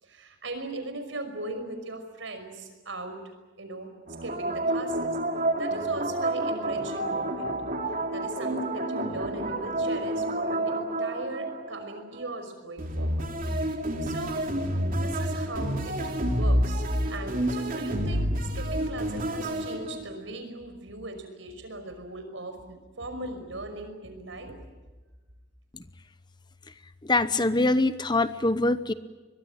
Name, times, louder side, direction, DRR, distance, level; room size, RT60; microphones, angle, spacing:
voice 1, 0.0-3.2 3.6-3.9 4.2-5.2 5.6-7.5 8.1-13.3 14.0-14.4 14.9-18.3 18.6-24.6, right 2 dB, 70° right, 7 dB, 5.6 m, -39 dB
sound 1, 4.1-12.3 12.8-20.2, right 1 dB, 45° right, 3.2 m, -29 dB
voice 2, 27.0-28.9, left 2 dB, 20° left, 13 dB, 0.8 m, -24 dB
23.5 x 21.5 x 8.9 m, 1.2 s
head